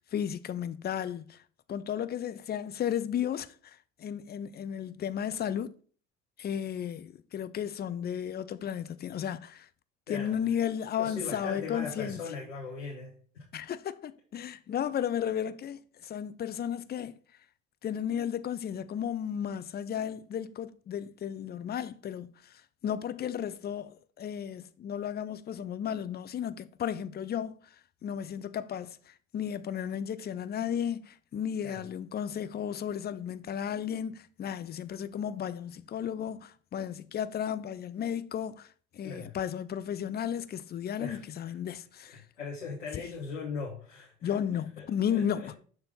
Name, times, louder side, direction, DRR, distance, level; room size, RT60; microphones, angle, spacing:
voice 1, 0.1-1.4 1.7-5.7 6.4-9.7 10.1-12.2 13.5-17.2 17.8-27.6 28.0-42.2 42.9-43.0 44.2-45.6, left 9 dB, 25° left, 0.5 m, -34 dB
voice 2, 10.1-10.4 11.0-13.4 31.6-31.8 39.0-39.3 41.0-41.5 42.1-44.3 44.8-45.6, left 4 dB, 90° left, 1.6 m, -40 dB
6.8 x 3.4 x 5.5 m
hypercardioid pair, 60°, 36 cm